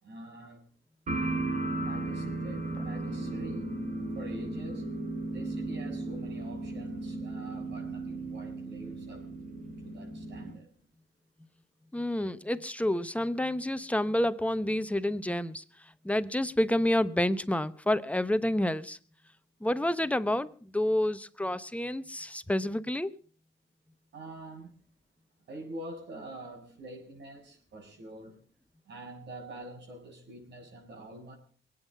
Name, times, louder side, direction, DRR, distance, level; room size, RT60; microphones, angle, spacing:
voice 1, 0.0-0.6 1.8-3.7 4.1-4.9 5.2-9.3 9.8-10.7 24.1-24.7 25.5-28.4 28.8-31.4, right 1 dB, 60° right, 6.7 m, -46 dB
sound 1, 1.1-10.6, right 2 dB, 40° right, 3.1 m, -35 dB
voice 2, 11.9-15.6 16.0-19.0 19.6-23.2, left 1 dB, 5° left, 0.9 m, -29 dB
22.0 x 9.2 x 5.5 m
cardioid pair, 90°, 20 cm